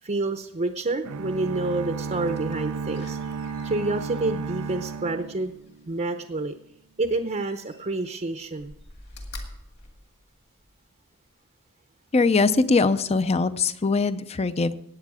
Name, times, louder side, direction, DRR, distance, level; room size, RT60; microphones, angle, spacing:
voice 1, 0.0-3.2 3.6-5.6 5.9-6.5 7.0-8.7, right 2 dB, 35° right, 6 dB, 0.7 m, -28 dB
sound 1, 1.1-6.0, right 5 dB, 90° right, 0.4 m, -33 dB
Slam, 2.2-6.1 7.2-8.1 8.5-10.8 11.3-11.4, left 2 dB, 50° left, 2.2 m, -46 dB
voice 2, 12.1-14.7, left 4 dB, 30° left, 14 dB, 0.5 m, -22 dB
18.0 x 8.5 x 4.9 m, 0.78 s
head